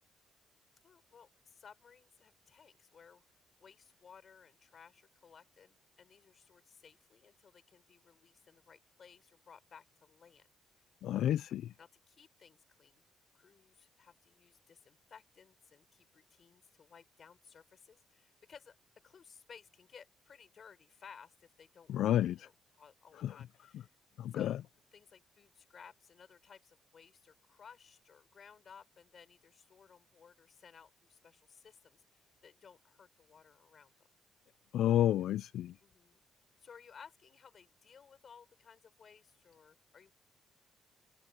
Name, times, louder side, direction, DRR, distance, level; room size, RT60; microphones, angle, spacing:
voice 1, 0.8-10.5 11.8-13.0 13.3-18.8 19.0-22.5 22.8-23.9 24.3-24.6 24.9-33.9 35.8-36.2 36.6-40.1, left 6 dB, 50° left, 4.9 m, -59 dB
voice 2, 11.0-11.7 21.9-22.5 23.2-23.3 24.2-24.5 34.7-35.7, left 12 dB, 80° left, 0.4 m, -30 dB
cardioid pair, 90°, 0 cm